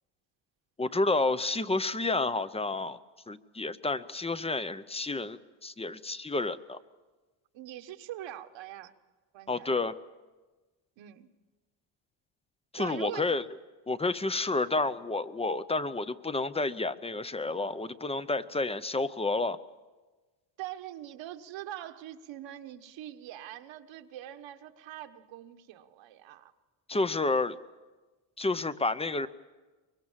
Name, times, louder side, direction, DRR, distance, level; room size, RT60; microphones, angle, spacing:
voice 1, 0.8-3.0 3.3-6.8 9.5-10.0 12.7-13.4 13.9-19.6 26.9-27.6 28.4-29.3, left 3 dB, 15° left, 13 dB, 0.7 m, -30 dB
voice 2, 7.5-8.9 9.3-9.7 11.0-11.3 12.8-13.4 20.6-26.5, right 12 dB, 70° right, 8 dB, 1.5 m, -43 dB
24.0 x 22.5 x 7.5 m, 1.3 s
cardioid pair, 115°, 47 cm